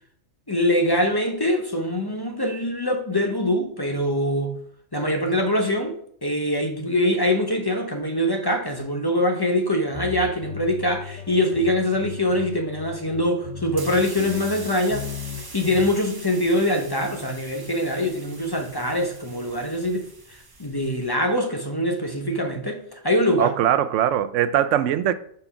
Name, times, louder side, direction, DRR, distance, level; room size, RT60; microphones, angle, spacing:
voice 1, 0.5-4.6 4.9-15.1 15.5-20.1 20.6-23.5, left 1 dB, 25° left, 0.7 m, -23 dB
sound 1, 9.9-15.9, left 7 dB, 80° left, 1.2 m, -37 dB
sound 2, 13.7-21.1, right 2 dB, 20° right, 0.7 m, -43 dB
voice 2, 23.4-25.1, right 10 dB, 75° right, 0.9 m, -21 dB
5.3 x 4.4 x 5.7 m
omnidirectional pair, 1.3 m